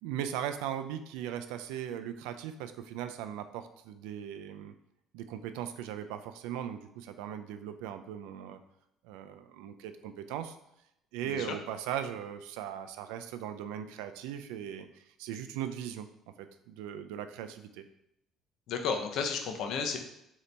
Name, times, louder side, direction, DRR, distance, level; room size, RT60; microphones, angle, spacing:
voice 1, 0.0-4.7 5.1-8.6 9.0-10.6 11.1-16.1 16.4-17.8, right 10 dB, 90° right, 9 dB, 0.3 m, -39 dB
voice 2, 11.2-11.6 18.7-20.0, left 5 dB, 70° left, 4 dB, 0.6 m, -32 dB
3.9 x 2.8 x 3.3 m, 0.81 s
cardioid pair, 100°, 0 cm